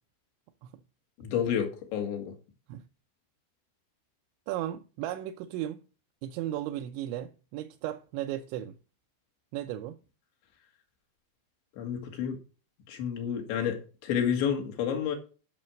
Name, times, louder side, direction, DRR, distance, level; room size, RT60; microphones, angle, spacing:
voice 1, 1.2-2.3 11.8-12.4 12.9-15.2, left 8 dB, 75° left, 4.1 m, -30 dB
voice 2, 4.5-5.8 6.2-8.8 9.5-10.0, right 12 dB, 85° right, 3.0 m, -35 dB
12.0 x 6.3 x 6.3 m
omnidirectional pair, 5.3 m